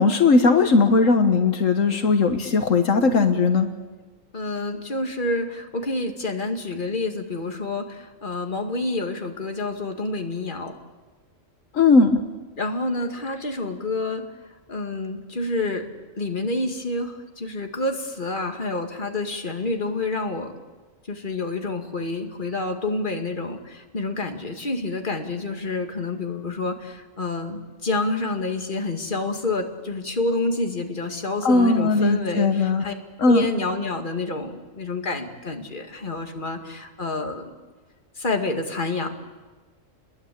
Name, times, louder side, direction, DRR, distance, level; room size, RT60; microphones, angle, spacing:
voice 1, 0.0-3.7 11.7-12.2 31.4-32.9 33.2-33.4, left 4 dB, 75° left, 6 dB, 1.7 m, -18 dB
voice 2, 4.3-10.7 12.6-14.2 14.7-15.9 16.2-20.5 21.1-32.9 33.3-37.5 38.2-39.1, left 2 dB, 40° left, 4 dB, 2.4 m, -28 dB
29.5 x 21.5 x 8.6 m, 1.3 s
omnidirectional pair, 1.3 m